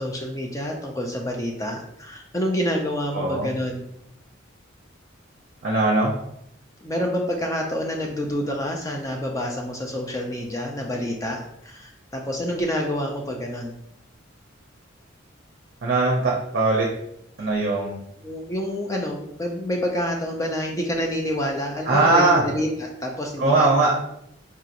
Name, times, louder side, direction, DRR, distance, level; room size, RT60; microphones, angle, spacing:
voice 1, 0.0-3.8 6.8-13.7 18.2-23.7, equal, 15° left, 1 dB, 0.4 m, -28 dB
voice 2, 3.1-3.5 5.6-6.1 15.8-16.9 17.4-18.0 21.9-22.4 23.4-24.1, right 2 dB, 50° right, -1 dB, 0.6 m, -20 dB
4.6 x 2.9 x 2.5 m, 0.77 s
head